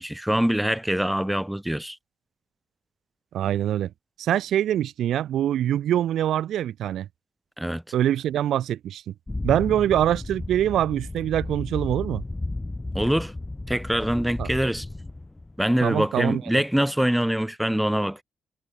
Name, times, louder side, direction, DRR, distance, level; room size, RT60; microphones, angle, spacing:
voice 1, 0.0-2.0 7.6-7.8 12.9-13.3 13.7-14.9 15.6-18.2, equal, 5° right, 2.0 m, -24 dB
voice 2, 3.3-3.9 4.2-7.1 7.9-9.1 9.4-12.2 14.4-14.5 15.8-16.6, right 11 dB, 75° right, 2.7 m, -24 dB
sound 1, 9.3-15.6, left 2 dB, 15° left, 2.5 m, -33 dB
cardioid pair, 90°, 0 cm